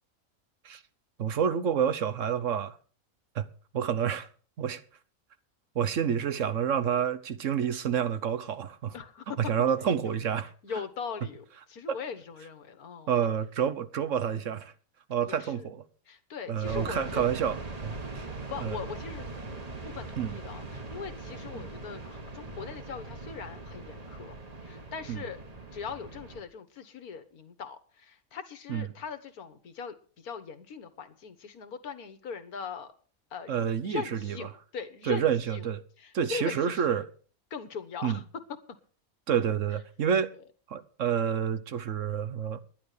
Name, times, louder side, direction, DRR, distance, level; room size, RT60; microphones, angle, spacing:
voice 1, 1.2-2.8 3.3-3.5 3.7-4.3 4.6-4.8 5.7-8.9 9.5-10.5 13.1-14.7 15.1-15.8 16.5-18.3 18.6-18.8 20.2-20.3 21.5-21.6 25.1-25.2 28.7-28.8 33.5-34.4 35.1-35.8 36.1-37.1 38.0-38.2 39.3-40.3 40.7-42.6, right 8 dB, 60° right, 1.2 m, -28 dB
voice 2, 8.9-9.4 10.0-10.2 10.6-13.3 15.2-15.7 16.1-17.2 18.3-19.3 19.8-24.4 24.6-25.4 25.7-32.9 33.3-33.6 33.8-35.7 36.0-37.1 37.5-38.4 38.7-38.8 40.3-40.4, left 6 dB, 90° left, 1.8 m, -40 dB
sound 1, 16.6-26.4, right 2 dB, 30° right, 1.3 m, -41 dB
11.0 x 10.5 x 6.6 m
omnidirectional pair, 1.5 m